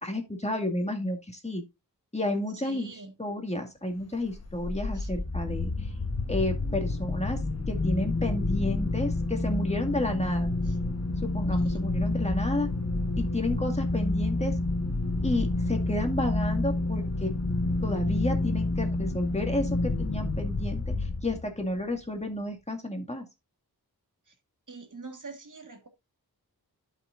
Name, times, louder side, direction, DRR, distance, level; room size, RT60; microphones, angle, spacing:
voice 1, 0.0-1.6 2.1-2.9 3.2-5.7 6.3-7.4 7.7-10.5 11.2-12.7 13.2-14.5 15.2-17.3 17.8-23.2, left 1 dB, 15° left, 2.1 m, -31 dB
voice 2, 2.5-3.2 4.9-5.1 10.6-10.8 11.5-11.8 24.3-24.4 24.7-25.9, right 3 dB, 55° right, 1.7 m, -45 dB
sound 1, 4.3-21.7, left 2 dB, 40° left, 1.2 m, -29 dB
11.5 x 5.9 x 2.5 m
wide cardioid pair, 50°, 38 cm